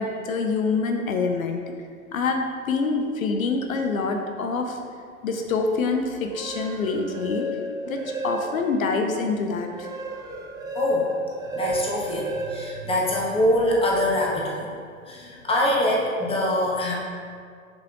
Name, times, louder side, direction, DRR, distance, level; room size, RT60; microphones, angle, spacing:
voice 1, 0.0-1.6 2.1-4.8 5.2-9.9, left 4 dB, 75° left, 3 dB, 0.7 m, -26 dB
sound 1, 6.1-8.8 9.3-13.6, right 1 dB, 10° right, 0.6 m, -33 dB
voice 2, 10.7-11.1 11.5-14.7 15.1-17.0, left 1 dB, 15° left, -3 dB, 1.3 m, -24 dB
6.9 x 5.3 x 2.9 m, 2.1 s
hypercardioid pair, 100°, 41 cm